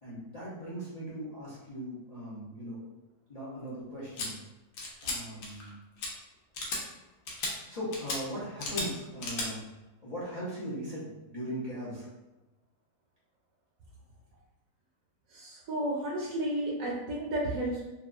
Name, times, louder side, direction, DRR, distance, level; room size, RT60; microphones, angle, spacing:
voice 1, 0.0-2.8 3.3-4.3 5.0-5.7 7.7-9.7 10.0-12.1, equal, 45° left, -10 dB, 0.5 m, -39 dB
sound 1, 4.2-4.3 4.8-5.2 5.4-5.7 6.0-6.1 6.5-6.8 7.3-7.5 7.9-8.2 8.6-8.9 9.2-9.5, left 2 dB, 65° left, 0.9 m, -34 dB
voice 2, 15.3-17.9, right 1 dB, 70° right, -4 dB, 0.9 m, -32 dB
2.8 x 2.3 x 2.4 m, 1.1 s
omnidirectional pair, 1.7 m